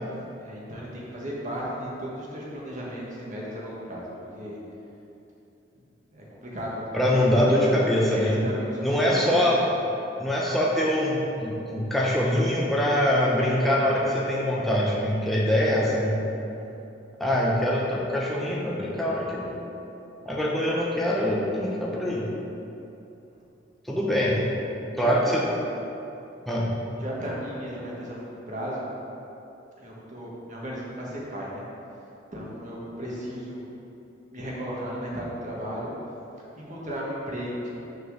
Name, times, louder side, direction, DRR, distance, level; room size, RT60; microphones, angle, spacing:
voice 1, 0.4-4.6 5.7-5.8 6.1-7.7 8.1-9.4 16.6-16.9 24.1-24.2 24.9-25.1 27.0-28.9 29.8-31.6 32.3-33.6 34.3-35.9 36.6-37.7, equal, 40° right, -5 dB, 1.6 m, -35 dB
voice 2, 6.9-8.4 8.8-9.6 10.2-16.2 17.2-19.6 20.3-22.3 23.9-24.5 25.0-25.4 26.5-26.8, equal, ahead, -5 dB, 0.7 m, -24 dB
6.6 x 4.5 x 6.4 m, 2.9 s
head